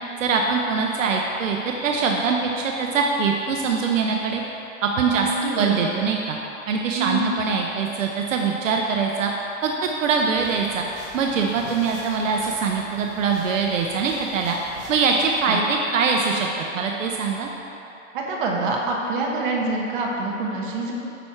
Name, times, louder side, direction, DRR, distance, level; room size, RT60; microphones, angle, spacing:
voice 1, 0.2-4.4 4.8-6.4 6.7-9.3 9.6-10.8 11.1-14.6 14.9-16.5 16.7-17.5, right 5 dB, 70° right, 1 dB, 0.8 m, -23 dB
voice 2, 5.1-5.9 6.9-7.3 15.5-15.6 18.1-20.9, right 3 dB, 40° right, -2 dB, 1.2 m, -26 dB
sound 1, 10.3-15.4, right 1 dB, 15° right, 0.5 m, -44 dB
9.4 x 4.5 x 5.8 m, 2.9 s
hypercardioid pair, 165°, 40 cm